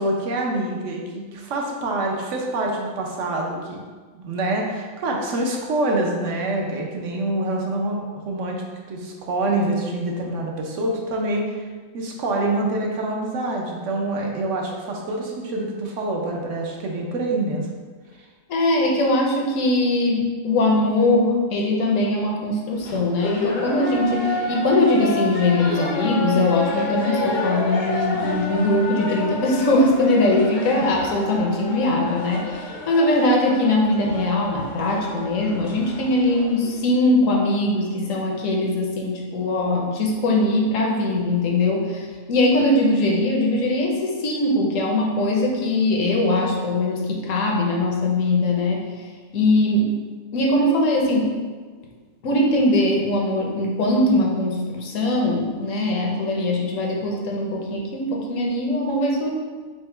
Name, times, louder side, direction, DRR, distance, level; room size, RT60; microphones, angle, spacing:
voice 1, 0.0-3.8 4.2-11.7 11.9-17.7 30.8-30.9, right 2 dB, 70° right, -1 dB, 1.0 m, -26 dB
voice 2, 18.5-48.8 49.3-49.9 50.3-51.3 52.2-59.3, left 1 dB, 75° left, -1 dB, 1.1 m, -21 dB
sound 1, 22.8-36.8, left 2 dB, 50° left, 0.6 m, -29 dB
4.4 x 2.1 x 4.4 m, 1.5 s
omnidirectional pair, 1.4 m